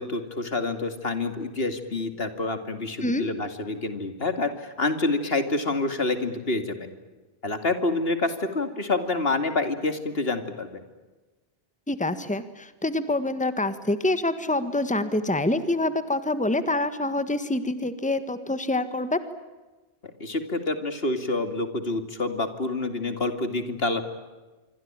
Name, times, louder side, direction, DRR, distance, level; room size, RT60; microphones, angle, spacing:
voice 1, 0.0-6.9 7.4-10.8 20.2-24.1, left 2 dB, 75° left, 9 dB, 2.8 m, -27 dB
voice 2, 11.9-19.2, left 2 dB, 5° left, 11 dB, 1.6 m, -26 dB
26.5 x 25.0 x 8.9 m, 1.2 s
omnidirectional pair, 1.0 m